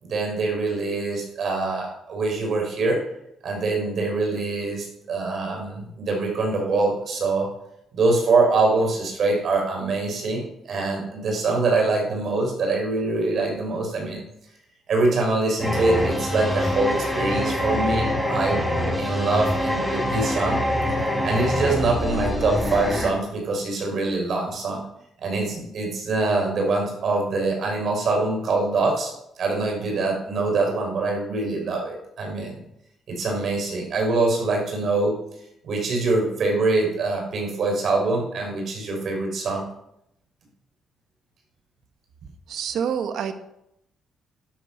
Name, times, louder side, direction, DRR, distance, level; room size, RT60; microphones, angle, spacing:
voice 1, 0.0-3.0 3.4-7.5 7.9-14.2 14.9-18.6 19.0-20.6 21.2-24.8 25.2-29.1 29.4-32.6 33.1-35.2 35.6-39.6, right 3 dB, 60° right, 1 dB, 5.8 m, -24 dB
sound 1, 15.6-23.1, left 1 dB, ahead, 4.8 m, -25 dB
voice 2, 42.5-43.3, right 8 dB, 75° right, 8 dB, 1.4 m, -27 dB
12.0 x 11.0 x 5.7 m, 0.79 s
cardioid pair, 90°, 0 cm